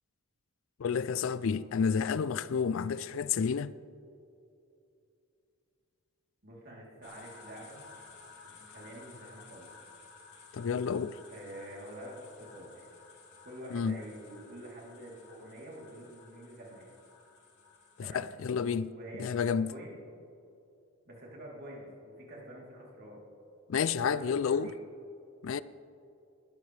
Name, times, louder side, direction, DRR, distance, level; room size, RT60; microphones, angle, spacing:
voice 1, 0.8-3.7 10.5-11.2 13.7-14.0 18.0-18.9 19.2-19.7 23.7-24.7 25.4-25.6, left 6 dB, 60° left, 0.4 m, -30 dB
voice 2, 6.4-7.8 8.3-9.7 11.3-12.9 13.4-16.9 18.0-18.3 18.9-20.0 21.0-23.2 24.0-24.8, right 1 dB, 45° right, 3.3 m, -47 dB
sound 1, 7.0-18.3, left 4 dB, 85° left, 4.1 m, -55 dB
20.5 x 13.0 x 3.4 m
head